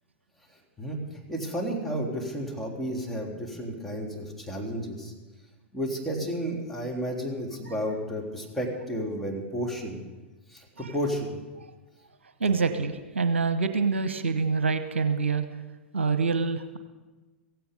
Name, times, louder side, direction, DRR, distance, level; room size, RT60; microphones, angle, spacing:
voice 1, 0.8-5.1 5.7-10.0 10.5-11.4, equal, 5° left, -2 dB, 3.3 m, -32 dB
voice 2, 12.4-15.4 15.9-16.8, right 4 dB, 75° right, 9 dB, 1.0 m, -26 dB
16.0 x 16.0 x 5.3 m, 1.2 s
figure-of-eight pair, 100°, 6 cm